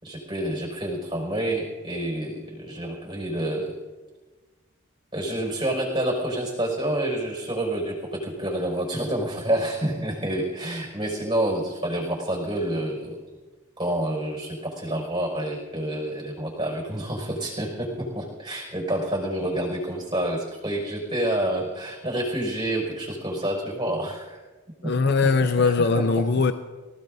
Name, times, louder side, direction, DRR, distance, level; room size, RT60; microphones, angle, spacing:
voice 1, 0.0-3.7 5.1-13.2 13.8-24.4 24.8-24.9 25.4-26.0 26.4-26.5, right 1 dB, 20° right, -2 dB, 5.3 m, -28 dB
voice 2, 24.8-26.5, left 4 dB, 50° left, 9 dB, 0.5 m, -21 dB
25.5 x 16.5 x 2.7 m, 1.3 s
head